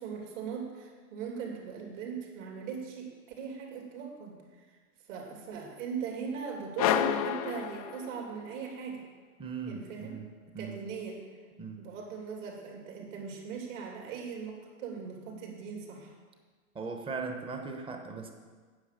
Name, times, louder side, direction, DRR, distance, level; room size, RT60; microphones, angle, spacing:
voice 1, 0.0-3.1 3.4-4.3 5.1-9.0 9.7-10.1 10.6-11.2 11.8-16.1, right 6 dB, 60° right, 0 dB, 3.2 m, -39 dB
sound 1, 6.8-8.5, left 11 dB, 30° left, 0.3 m, -29 dB
voice 2, 9.4-10.3 10.5-10.8 11.6-11.8 16.7-18.3, right 4 dB, 10° right, 4 dB, 1.0 m, -38 dB
9.5 x 7.9 x 6.7 m, 1.5 s
hypercardioid pair, 130°, 43 cm